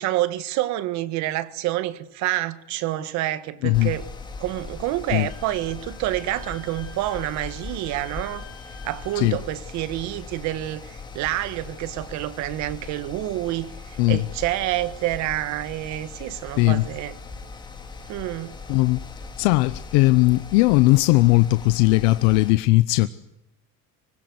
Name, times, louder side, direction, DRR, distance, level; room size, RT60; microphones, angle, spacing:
voice 1, 0.0-4.1 4.4-8.4 8.8-17.1 18.1-18.5, right 15 dB, 45° right, 1.5 m, -28 dB
voice 2, 3.6-3.9 5.1-5.3 9.2-9.4 14.0-14.2 16.6-16.9 18.7-19.0 19.4-23.1, left 21 dB, 65° left, 0.9 m, -18 dB
Mechanical fan, 3.7-22.5, left 4 dB, 10° left, 2.7 m, -40 dB
Wind instrument woodwind instrument, 5.3-9.2, left 6 dB, 40° left, 4.1 m, -48 dB
25.0 x 20.0 x 9.5 m
cardioid pair, 175°, 38 cm